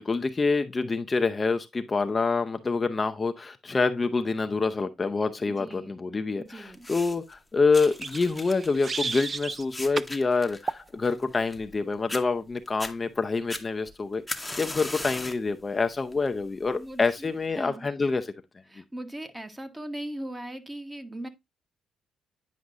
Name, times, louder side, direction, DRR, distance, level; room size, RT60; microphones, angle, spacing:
voice 1, 0.0-18.3, left 4 dB, 30° left, 0.6 m, -27 dB
voice 2, 5.5-5.9 6.4-6.9 16.7-17.3 17.6-17.9 18.7-21.3, right 1 dB, 15° right, 1.1 m, -39 dB
sound 1, 6.7-7.3 7.7-11.8 12.1-12.2 12.7-12.9 13.5-15.5 15.9-16.3 17.1-17.2, left 2 dB, 10° left, 0.9 m, -38 dB
sound 2, 7.8-9.6 9.9-10.2 10.7-10.9, right 4 dB, 35° right, 0.4 m, -33 dB
9.5 x 5.1 x 2.5 m
cardioid pair, 90°, 0 cm